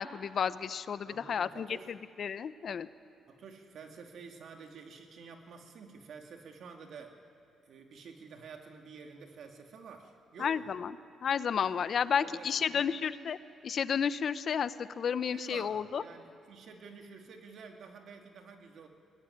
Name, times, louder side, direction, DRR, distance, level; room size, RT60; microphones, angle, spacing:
voice 1, 0.0-2.9 10.4-10.9 11.2-13.4 13.6-16.0, left 7 dB, 55° left, 14 dB, 0.8 m, -32 dB
voice 2, 1.0-1.9 3.3-7.2 7.6-10.7 11.9-12.9 15.3-18.9, right 5 dB, 65° right, 3 dB, 2.6 m, -50 dB
22.5 x 18.5 x 9.9 m, 2.4 s
cardioid pair, 90°, 0 cm